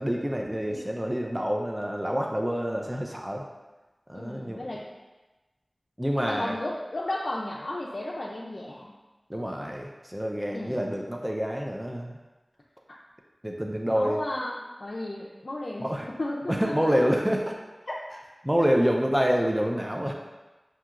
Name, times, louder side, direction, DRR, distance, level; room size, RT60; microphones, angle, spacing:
voice 1, 0.0-3.4 4.1-4.7 6.0-6.5 9.3-12.2 13.4-14.2 15.8-16.1 16.5-17.5 18.4-20.1, equal, 15° right, 1 dB, 0.4 m, -27 dB
voice 2, 4.1-4.8 6.1-8.9 10.5-10.9 13.9-15.9 16.2-17.3 17.9-18.0, left 1 dB, 70° left, -4 dB, 0.4 m, -34 dB
5.8 x 2.7 x 2.5 m, 1.1 s
wide cardioid pair, 45°, 0 cm